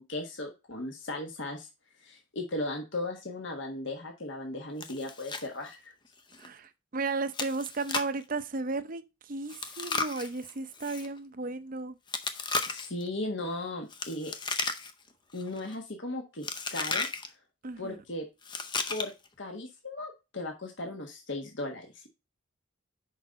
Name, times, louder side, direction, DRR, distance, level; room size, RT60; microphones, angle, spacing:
voice 1, 0.0-1.7 2.0-5.9 12.7-14.3 15.3-17.1 17.8-18.2 18.9-19.1 19.4-22.1, left 2 dB, 60° left, 1.5 m, -37 dB
Chewing mastication, 4.8-5.5 5.7-5.8 6.3-6.5 7.3-8.2 9.5-11.1 12.1-13.0 13.9-15.1 15.4-15.7 16.4-17.3 18.4-19.3, left 4 dB, 20° left, 0.6 m, -34 dB
voice 2, 6.4-12.0 17.6-18.0, right 3 dB, 40° right, 0.6 m, -34 dB
6.2 x 5.3 x 4.1 m
head